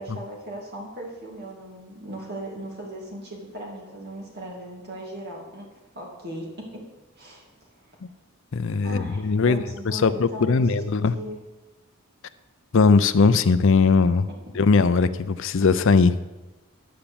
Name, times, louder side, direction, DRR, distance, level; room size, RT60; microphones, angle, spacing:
voice 1, 0.0-5.7 5.9-6.8 7.2-7.4 7.8-8.0 8.8-11.4, right 1 dB, 45° right, -2 dB, 2.4 m, -38 dB
voice 2, 8.5-9.6 9.9-11.1 12.7-14.3 14.6-16.1, left 4 dB, 60° left, 12 dB, 0.5 m, -19 dB
12.0 x 5.9 x 7.0 m, 1.1 s
head